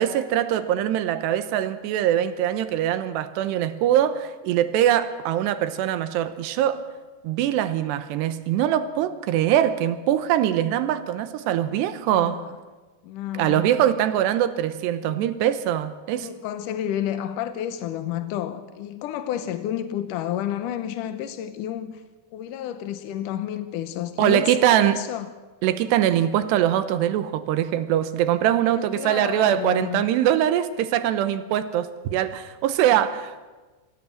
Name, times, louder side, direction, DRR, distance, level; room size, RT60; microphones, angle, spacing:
voice 1, 0.0-6.8 7.2-12.4 13.3-16.3 24.2-25.0 25.6-33.5, right 11 dB, 85° right, 3.1 m, -22 dB
voice 2, 12.1-12.6 13.0-13.8 15.0-15.3 16.2-22.0 22.3-25.3 28.7-30.1, left 11 dB, 75° left, 1.9 m, -31 dB
24.5 x 16.0 x 7.4 m
omnidirectional pair, 4.8 m